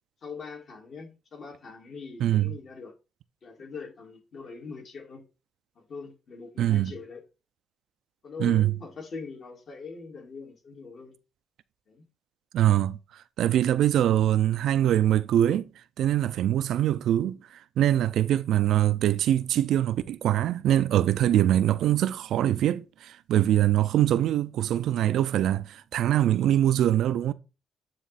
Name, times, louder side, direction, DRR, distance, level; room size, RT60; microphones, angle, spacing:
voice 1, 0.2-2.9 3.4-5.2 5.8-7.2 8.2-11.1 11.9-12.1, left 5 dB, 55° left, 2.2 m, -42 dB
voice 2, 2.2-2.5 6.6-6.9 8.4-8.7 12.5-13.0 13.4-15.7 16.0-17.4 17.8-27.3, right 12 dB, 75° right, 0.4 m, -23 dB
9.2 x 3.1 x 4.1 m
cardioid pair, 90°, 0 cm